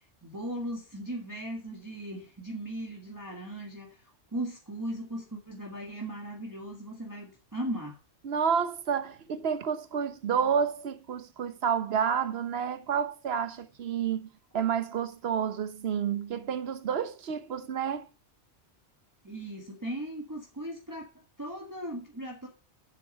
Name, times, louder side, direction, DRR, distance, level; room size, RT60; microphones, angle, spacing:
voice 1, 0.0-8.0 19.2-22.5, right 1 dB, 15° right, 1.5 m, -38 dB
voice 2, 8.2-18.1, right 7 dB, 65° right, 1.0 m, -30 dB
8.2 x 7.1 x 5.3 m
omnidirectional pair, 1.1 m